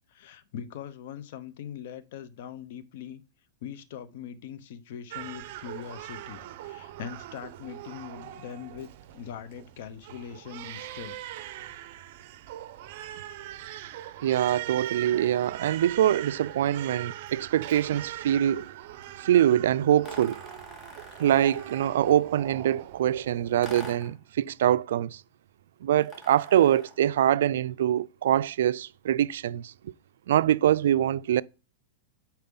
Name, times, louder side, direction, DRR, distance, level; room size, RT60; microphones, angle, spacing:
voice 1, 0.1-3.2 3.6-11.2, left 9 dB, 60° left, 0.9 m, -41 dB
Crying sobbing, 5.1-23.9, right 14 dB, 50° right, 0.7 m, -41 dB
voice 2, 14.2-18.6 19.2-20.4 21.2-25.2 25.8-29.7 30.3-31.4, right 11 dB, 75° right, 0.3 m, -24 dB
sound 1, 20.0-22.0 23.6-24.2 26.0-27.1, equal, 15° left, 1.9 m, -45 dB
9.5 x 4.3 x 3.9 m
supercardioid pair, 155°, 0 cm